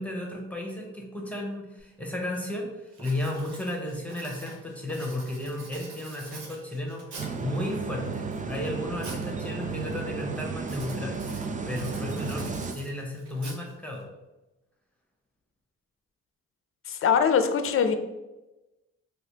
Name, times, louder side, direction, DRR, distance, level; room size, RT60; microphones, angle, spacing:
voice 1, 0.0-14.0, left 1 dB, 5° left, -1 dB, 1.0 m, -34 dB
Writing, 1.8-1.9 2.3-2.6 2.9-7.5 8.1-9.3 9.6-10.0 10.6-14.0, right 3 dB, 75° right, 0.8 m, -46 dB
sound 1, 7.2-12.7, right 4 dB, 25° right, 0.4 m, -33 dB
voice 2, 16.9-18.0, left 7 dB, 40° left, 8 dB, 0.5 m, -22 dB
3.1 x 2.9 x 2.9 m, 1.0 s
supercardioid pair, 40°, 35 cm